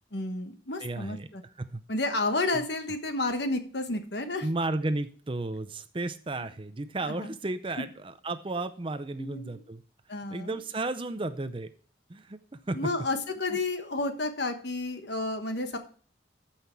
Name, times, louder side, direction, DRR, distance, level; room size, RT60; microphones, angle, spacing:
voice 1, 0.1-1.4 1.9-4.5 7.0-7.3 9.2-9.5 10.1-10.6 12.7-15.8, left 2 dB, 60° left, 7 dB, 1.3 m, -31 dB
voice 2, 0.8-1.3 1.7-1.8 2.5-2.6 4.4-9.8 10.3-11.7 12.1-12.4 12.7-12.8 13.5-13.6, right 2 dB, 25° right, 12 dB, 0.5 m, -33 dB
14.0 x 5.8 x 4.5 m, 0.44 s
head